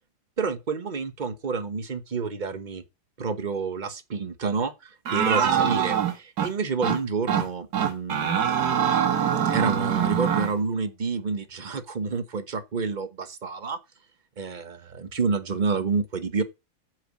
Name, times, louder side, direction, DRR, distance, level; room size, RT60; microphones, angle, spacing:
voice 1, 0.4-2.8 3.2-8.7 9.5-13.8 14.4-16.4, right 4 dB, 35° right, 0.8 m, -29 dB
sound 1, 5.1-6.5 6.8-7.0 7.3-7.5 7.7-10.5, right 8 dB, 60° right, 1.7 m, -23 dB
8.0 x 7.3 x 7.4 m
omnidirectional pair, 2.0 m